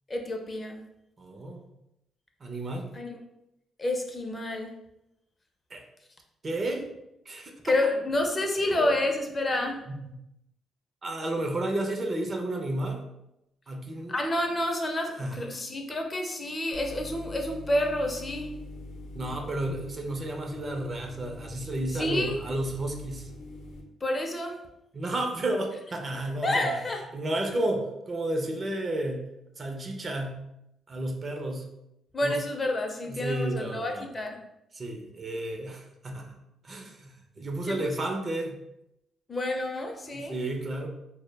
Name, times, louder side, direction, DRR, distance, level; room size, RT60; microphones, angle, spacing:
voice 1, 0.1-0.8 2.9-3.2 3.8-4.7 7.6-9.8 14.1-18.5 21.9-22.4 24.0-24.6 26.4-27.0 32.1-34.4 37.6-38.0 39.3-40.3, left 1 dB, 30° left, 3 dB, 0.4 m, -29 dB
voice 2, 1.2-1.7 2.4-2.9 5.7-5.9 6.4-6.8 7.3-7.7 9.9-10.1 11.0-13.0 13.7-14.1 15.2-15.4 19.1-23.3 24.9-26.8 27.1-29.2 29.6-30.5 30.9-31.7 32.2-32.4 33.0-34.0 34.7-36.4 36.6-38.6 40.1-40.9, right 1 dB, 35° right, 3 dB, 0.4 m, -32 dB
sound 1, 16.7-23.8, left 1 dB, 85° left, 0.5 m, -43 dB
2.1 x 2.0 x 3.2 m, 0.86 s
cardioid pair, 90°, 0 cm